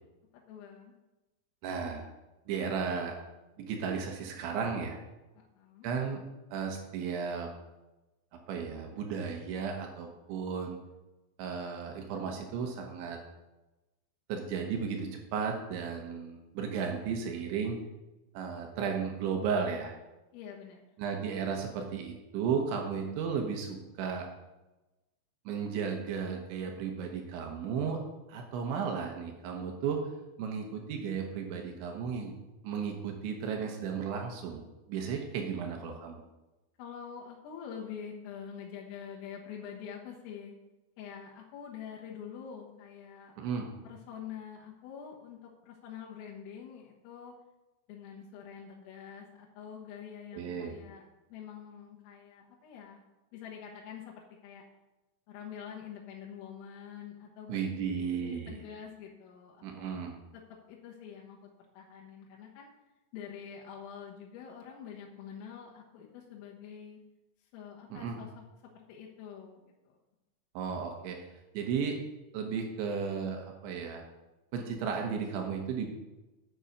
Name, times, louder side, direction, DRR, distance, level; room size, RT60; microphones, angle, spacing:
voice 1, 0.5-0.9 5.4-5.9 20.3-20.8 35.6-35.7 36.8-40.6 41.0-43.4 43.8-47.3 47.9-53.0 53.3-54.6 55.3-60.0 60.3-60.4 60.7-62.7 63.1-67.0 67.5-68.3 68.8-70.0, left 8 dB, 90° left, -3 dB, 4.0 m, -46 dB
voice 2, 1.6-2.1 2.5-3.1 3.6-5.0 5.8-6.2 6.5-7.5 8.5-10.8 11.4-13.2 14.3-17.8 18.3-19.9 21.0-24.3 25.5-28.0 28.3-30.0 30.4-32.3 32.6-34.6 34.9-36.2 43.4-43.7 50.3-50.8 57.5-58.6 59.6-60.1 67.9-68.2 70.5-71.2 71.5-72.0 72.3-74.0 74.5-75.9, right 6 dB, 75° right, 2 dB, 3.3 m, -34 dB
9.7 x 6.3 x 6.6 m, 1.1 s
omnidirectional pair, 5.8 m